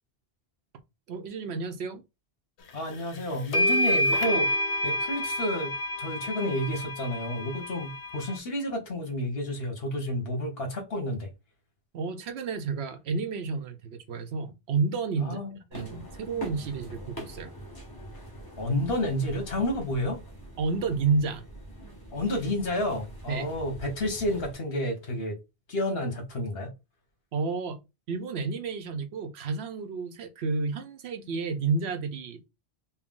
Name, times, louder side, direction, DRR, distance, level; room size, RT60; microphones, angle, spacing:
voice 1, 1.1-2.0 11.9-15.4 15.7-17.5 20.6-21.4 23.3-23.5 27.3-27.8 28.1-32.5, right 4 dB, 80° right, 0.9 m, -30 dB
voice 2, 2.7-4.5 4.8-5.7 6.0-11.3 15.2-15.5 18.6-20.2 22.1-25.4 25.7-26.7, left 1 dB, 65° left, 1.5 m, -30 dB
sound 1, 2.9-3.0 3.5-8.4, left 1 dB, 90° left, 1.0 m, -28 dB
sound 2, 15.7-24.5, right 1 dB, 20° left, 1.0 m, -43 dB
4.4 x 2.1 x 3.7 m
omnidirectional pair, 1.1 m